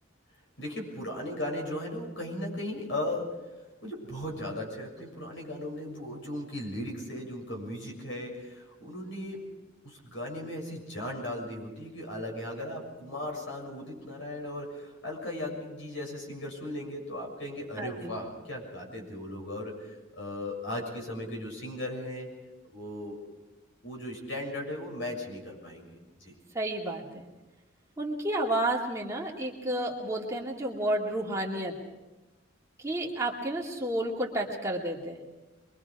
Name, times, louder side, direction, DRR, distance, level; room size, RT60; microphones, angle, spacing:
voice 1, 0.6-3.3 3.8-9.4 9.8-22.3 22.7-23.2 23.8-25.9 26.2-26.3, left 1 dB, 70° left, 1 dB, 6.9 m, -37 dB
voice 2, 17.8-18.1 26.5-27.3 28.0-31.7 32.8-35.2, right 1 dB, 15° right, -3 dB, 2.4 m, -31 dB
25.5 x 23.0 x 4.9 m, 1.1 s
head